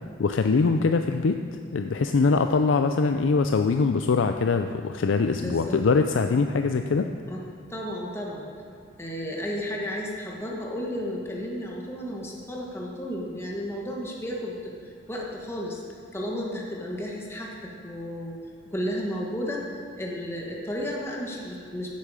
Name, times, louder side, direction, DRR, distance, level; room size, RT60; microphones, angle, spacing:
voice 1, 0.2-1.4 1.7-7.1, left 4 dB, 85° left, 7 dB, 0.4 m, -23 dB
voice 2, 5.4-5.8 7.3-7.4 7.7-8.5 9.0-15.8 16.1-18.3 18.7-19.6 20.0-21.9, equal, 15° left, -2 dB, 1.3 m, -33 dB
15.0 x 8.5 x 4.9 m, 2.3 s
head